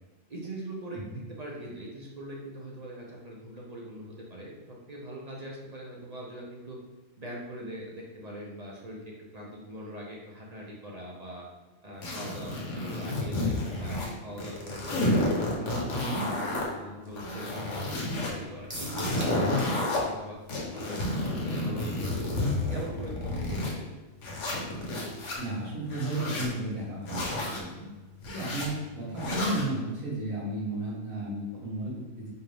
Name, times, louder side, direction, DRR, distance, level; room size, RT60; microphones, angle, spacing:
voice 1, 0.3-1.0 1.4-4.6 4.9-6.8 7.2-11.4 11.8-16.3 16.8-20.4 20.7-22.3 22.7-23.8, right 1 dB, 45° right, -3 dB, 0.5 m, -42 dB
sound 1, 12.0-14.1 14.4-16.7 17.1-18.3 18.7-20.0 20.5-23.7 24.2-25.4 25.9-26.5 27.0-27.6 28.2-28.7 29.2-29.7, left 1 dB, 65° left, 1.1 m, -30 dB
sound 2, 18.7-19.8 20.1-20.2 20.5-20.6, equal, 10° right, 0.7 m, -40 dB
voice 2, 25.4-27.9 28.3-32.3, right 1 dB, 85° right, -5 dB, 1.6 m, -33 dB
4.4 x 2.4 x 3.3 m, 1.2 s
omnidirectional pair, 1.4 m